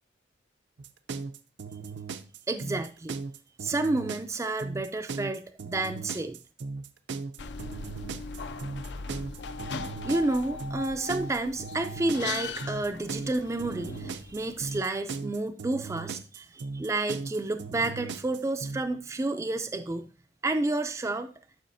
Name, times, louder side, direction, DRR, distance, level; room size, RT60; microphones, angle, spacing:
sound 1, 0.8-18.8, right 4 dB, 75° right, 0.5 m, -38 dB
voice 1, 2.5-3.2 3.6-6.4 10.0-20.1 20.4-21.3, right 2 dB, 15° right, 7 dB, 0.3 m, -30 dB
sound 2, 7.4-14.8, left 4 dB, 75° left, 0.5 m, -39 dB
11.5 x 5.4 x 2.6 m, 0.36 s
head